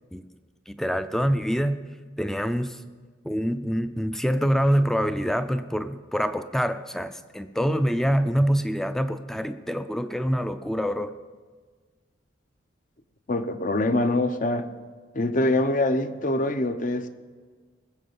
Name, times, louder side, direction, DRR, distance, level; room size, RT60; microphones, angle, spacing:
voice 1, 0.7-1.8 2.2-2.8 3.2-11.1, equal, ahead, 11 dB, 0.4 m, -25 dB
voice 2, 13.3-14.7 15.1-17.1, left 1 dB, 45° left, 10 dB, 0.7 m, -24 dB
20.0 x 7.7 x 5.4 m, 1.5 s
head